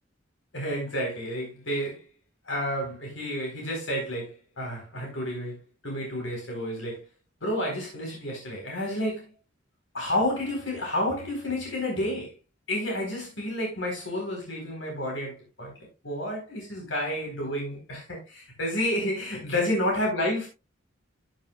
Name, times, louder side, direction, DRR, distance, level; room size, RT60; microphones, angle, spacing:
voice 1, 0.5-2.0 2.5-7.1 7.4-9.3 9.9-12.3 12.7-15.7 16.0-20.5, left 1 dB, 70° left, 4.1 m, -30 dB
14.5 x 7.8 x 2.4 m
head